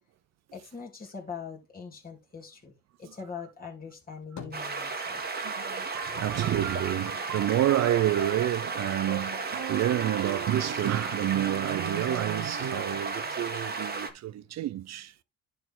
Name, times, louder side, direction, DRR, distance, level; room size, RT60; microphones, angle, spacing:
voice 1, 0.5-5.2, left 6 dB, 30° left, 3.5 m, -42 dB
sound 1, 3.9-5.4 5.7-8.1 8.5-9.4, left 5 dB, 65° left, 2.9 m, -50 dB
sound 2, 4.5-14.1, right 4 dB, 30° right, 1.7 m, -34 dB
voice 2, 5.4-15.1, right 12 dB, 60° right, 0.5 m, -29 dB
sound 3, 6.0-13.0, right 11 dB, 80° right, 0.9 m, -39 dB
11.0 x 4.3 x 3.8 m
cardioid pair, 90°, 30 cm